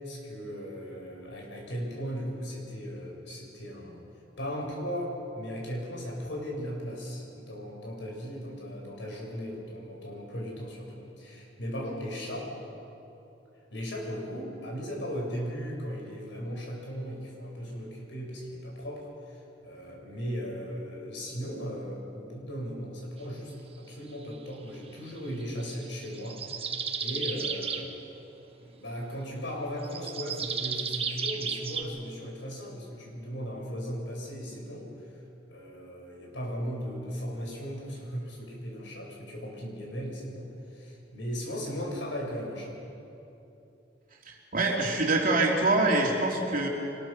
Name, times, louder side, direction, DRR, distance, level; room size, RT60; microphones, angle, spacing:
voice 1, 0.0-4.0 4.4-12.6 13.7-26.7 27.0-27.9 28.6-34.9 35.5-42.8, equal, 75° left, -1 dB, 6.2 m, -37 dB
sound 1, 25.4-27.9 29.8-31.8, right 6 dB, 30° right, 1.3 m, -33 dB
voice 2, 44.3-46.7, right 2 dB, 50° right, -1 dB, 3.5 m, -25 dB
25.0 x 20.5 x 6.6 m, 2.9 s
head